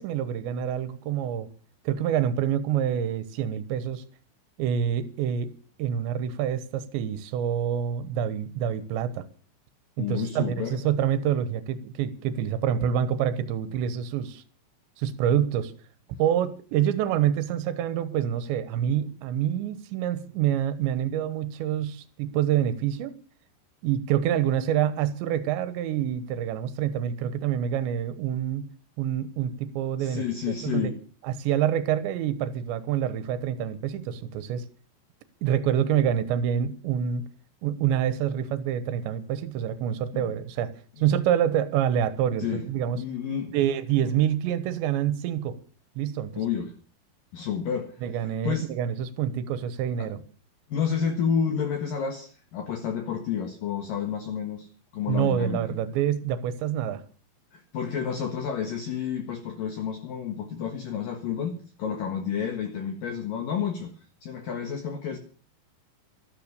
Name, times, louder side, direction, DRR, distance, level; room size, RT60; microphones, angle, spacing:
voice 1, 0.0-1.5 1.9-4.0 4.6-5.5 5.8-9.3 10.0-14.4 15.0-15.7 16.2-23.2 23.8-28.7 29.0-30.3 30.6-30.9 31.2-34.7 35.4-37.3 37.6-43.0 43.5-45.6 46.0-46.3 48.0-50.2 55.1-57.0, right 9 dB, 90° right, 3.4 m, -27 dB
voice 2, 10.0-10.8 30.0-30.9 40.1-40.4 41.0-41.1 42.4-42.6 42.9-43.5 44.0-44.1 46.4-46.7 47.3-48.7 50.0-50.1 50.7-54.7 54.9-55.6 57.5-61.5 61.8-63.9 64.2-65.2, left 7 dB, 60° left, 2.8 m, -30 dB
13.5 x 13.0 x 6.8 m
omnidirectional pair, 5.1 m